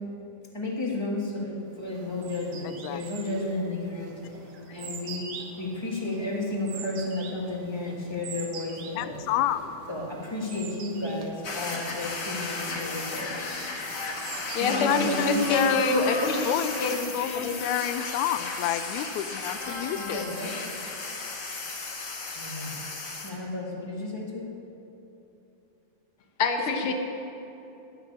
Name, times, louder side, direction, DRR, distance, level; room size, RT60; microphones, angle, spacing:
voice 1, 0.5-4.2 4.7-9.2 9.9-13.4 14.6-15.4 19.9-20.6 22.3-22.8 23.2-24.4 26.6-26.7, left 2 dB, 20° left, -2 dB, 0.8 m, -33 dB
sound 1, 1.7-16.6, right 5 dB, 75° right, 2.7 m, -45 dB
voice 2, 9.0-9.6 14.7-16.1 16.5-20.3, left 12 dB, 80° left, 12 dB, 1.9 m, -29 dB
sound 2, 11.4-23.3, left 3 dB, 45° left, 1.7 m, -34 dB
voice 3, 14.5-16.4 16.8-17.1 17.4-17.6 26.4-26.9, left 3 dB, 60° left, 5 dB, 1.5 m, -25 dB
14.0 x 6.5 x 10.0 m, 3.0 s
omnidirectional pair, 3.5 m